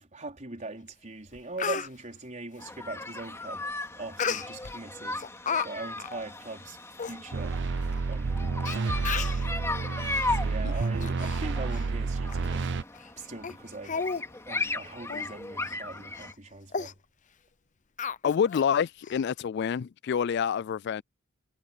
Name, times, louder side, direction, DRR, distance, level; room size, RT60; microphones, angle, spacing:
voice 1, 0.0-5.3 5.6-7.6 8.1-8.5 10.0-12.8 13.2-14.0 14.4-17.0, right 2 dB, 40° right, 4.4 m, -41 dB
Speech, 0.9-1.0 1.3-1.9 4.2-4.7 5.2-5.7 6.0-6.1 6.7-6.8 7.0-7.2 7.9-8.0 8.7-8.8 9.0-9.4 10.1-10.3 10.7-11.4 11.7-11.9 12.3-12.4 12.9-13.1 13.4-13.5 13.8-14.2 14.6-14.7 15.1-15.3 15.6-15.8 16.2-16.3 16.7-16.9 18.0-18.7 19.0-19.1, left 6 dB, 40° left, 0.8 m, -33 dB
sound 1, 2.6-16.3, left 2 dB, 15° left, 2.8 m, -37 dB
sound 2, 7.3-12.8, right 4 dB, 60° right, 0.6 m, -30 dB
voice 2, 18.2-21.0, left 7 dB, 55° left, 0.3 m, -27 dB
head